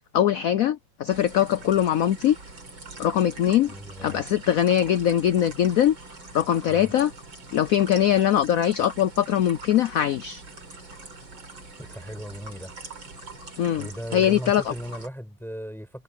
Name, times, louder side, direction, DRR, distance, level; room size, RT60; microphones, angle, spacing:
voice 1, 0.1-2.4 3.0-3.7 4.0-5.9 6.3-7.1 7.5-10.4 13.6-14.6, left 10 dB, 75° left, 0.8 m, -22 dB
sound 1, 1.1-15.1, right 2 dB, 75° right, 6.5 m, -43 dB
voice 2, 3.7-4.2 6.7-6.9 11.8-12.7 13.8-16.0, equal, ahead, 7.4 m, -37 dB
omnidirectional pair, 2.1 m